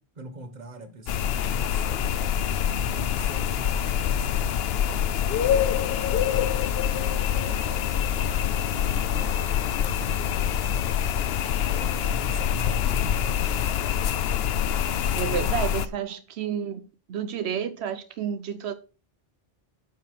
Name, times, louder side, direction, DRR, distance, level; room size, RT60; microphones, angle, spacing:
voice 1, 0.0-2.2 2.6-4.7 4.9-6.6 6.9-13.7, right 2 dB, 45° right, 1.4 m, -43 dB
sound 1, 1.1-15.9, left 9 dB, 75° left, 0.8 m, -25 dB
voice 2, 15.2-18.7, right 8 dB, 90° right, 1.0 m, -30 dB
9.2 x 4.8 x 5.7 m
omnidirectional pair, 1.1 m